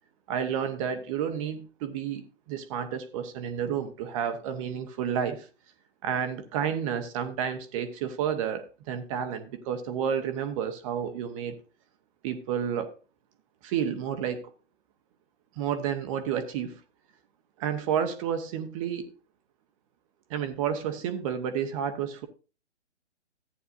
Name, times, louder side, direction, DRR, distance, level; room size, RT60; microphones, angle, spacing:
voice 1, 0.3-5.5 6.0-11.6 12.2-12.9 13.6-14.5 15.6-16.8 17.6-19.1 20.3-22.3, right 8 dB, 25° right, 1.0 m, -31 dB
14.5 x 9.3 x 2.6 m
figure-of-eight pair, 130°, 36 cm